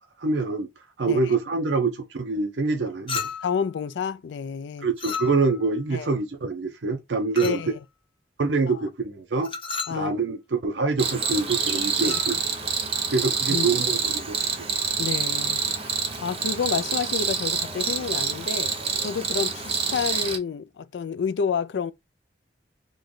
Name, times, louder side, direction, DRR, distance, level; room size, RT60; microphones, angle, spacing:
voice 1, 0.2-0.7 1.0-3.2 4.8-7.6 8.4-9.5 9.9-12.4 13.1-14.7, right 4 dB, 75° right, 0.6 m, -25 dB
voice 2, 1.0-1.4 3.4-4.9 5.9-6.1 7.4-7.7 8.7-8.8 9.9-10.2 12.0-12.2 13.5-13.7 15.0-21.9, left 6 dB, 70° left, 0.4 m, -29 dB
Chink clink, 3.1-3.6 5.0-5.7 7.4-7.7 9.4-10.0 11.9-12.3, left 5 dB, 30° left, 0.6 m, -33 dB
Cricket, 11.0-20.4, right 5 dB, 35° right, 0.6 m, -27 dB
3.2 x 2.2 x 3.7 m
head